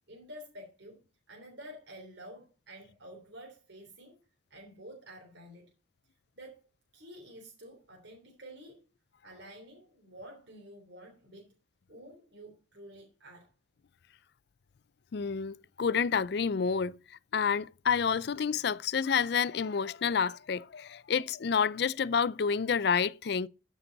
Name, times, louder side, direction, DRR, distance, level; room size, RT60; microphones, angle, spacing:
voice 1, 0.1-1.0 1.3-4.2 4.5-5.7 6.3-6.6 6.9-8.8 9.2-11.5 11.9-13.5, equal, 70° right, 3.3 m, -50 dB
voice 2, 15.1-17.0 17.3-23.5, left 6 dB, 60° left, 0.4 m, -29 dB
13.0 x 6.0 x 3.9 m
head